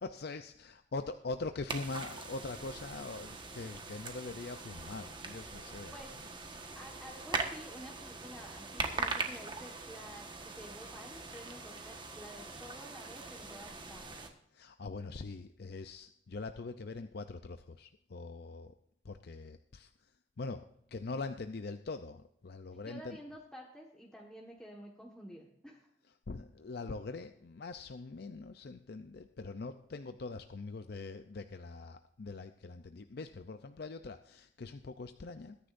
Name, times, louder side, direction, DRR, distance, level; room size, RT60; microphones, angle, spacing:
voice 1, 0.0-5.9 14.5-18.7 19.0-20.1 20.4-23.2 26.3-35.6, left 3 dB, 60° left, 9 dB, 0.5 m, -43 dB
sound 1, 1.7-14.3, right 3 dB, 25° right, 1.4 m, -42 dB
voice 2, 6.7-14.3 22.8-25.9, equal, 5° left, -2 dB, 1.5 m, -50 dB
21.5 x 10.0 x 2.6 m, 0.77 s
head